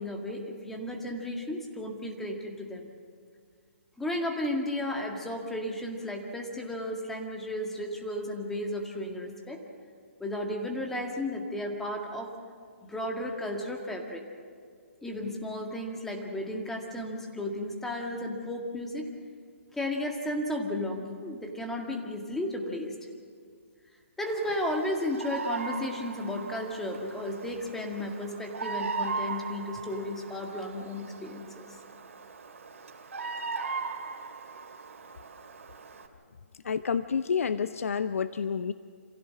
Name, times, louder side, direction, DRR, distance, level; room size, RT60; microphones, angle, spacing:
voice 1, 0.0-2.9 4.0-9.6 10.2-12.3 12.9-14.2 15.0-19.1 19.7-22.9 24.2-31.7, left 1 dB, 5° left, 1 dB, 1.9 m, -34 dB
Bird vocalization bird call bird song, 24.3-36.1, right 4 dB, 70° right, 3.0 m, -38 dB
voice 2, 36.6-38.7, left 6 dB, 75° left, 12 dB, 0.7 m, -29 dB
27.5 x 16.0 x 7.6 m, 2.1 s
hypercardioid pair, 155°, 8 cm